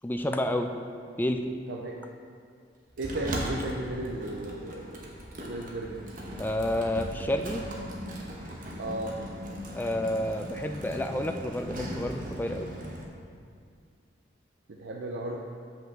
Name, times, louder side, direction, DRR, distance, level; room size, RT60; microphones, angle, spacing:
voice 1, 0.0-0.7 1.2-1.5 6.3-7.6 9.7-12.7, left 1 dB, 10° left, 5 dB, 0.3 m, -30 dB
voice 2, 1.7-2.0 3.0-5.0 5.5-6.0 8.8-9.2 14.7-15.4, right 2 dB, 70° right, 0 dB, 0.5 m, -34 dB
Sliding door, 3.0-13.0, equal, 45° right, 1.0 m, -38 dB
6.0 x 5.3 x 6.7 m, 2.2 s
head